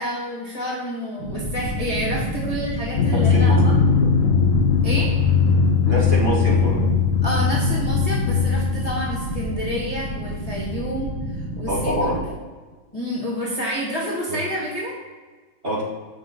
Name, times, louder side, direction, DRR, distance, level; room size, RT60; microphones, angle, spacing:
voice 1, 0.0-3.7 4.8-5.1 7.2-12.3 12.9-15.0, equal, 20° left, -6 dB, 1.7 m, -29 dB
sound 1, 1.2-12.1, right 1 dB, 55° right, 2.0 m, -30 dB
Drum, 3.0-9.4, left 5 dB, 80° left, 1.6 m, -19 dB
voice 2, 5.9-6.8 11.7-12.2 14.3-14.4 15.6-15.8, equal, 30° right, -7 dB, 2.1 m, -24 dB
7.9 x 6.2 x 4.0 m, 1.4 s
omnidirectional pair, 2.4 m